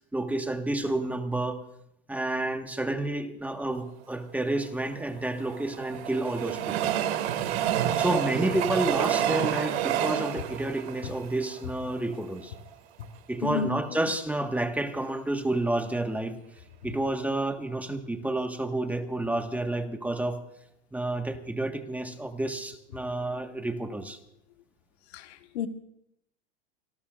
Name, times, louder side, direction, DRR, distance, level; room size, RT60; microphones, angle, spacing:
voice 1, 0.1-1.6 2.1-6.9 8.0-12.5 13.3-16.4 16.8-20.4 20.9-24.2, right 1 dB, 5° right, 1.5 m, -30 dB
Train, 4.9-12.2 12.7-12.8 13.0-13.1, right 10 dB, 85° right, 2.3 m, -29 dB
voice 2, 13.4-14.0 25.1-25.7, left 6 dB, 80° left, 1.5 m, -32 dB
26.0 x 20.0 x 2.5 m
supercardioid pair, 125°, 32 cm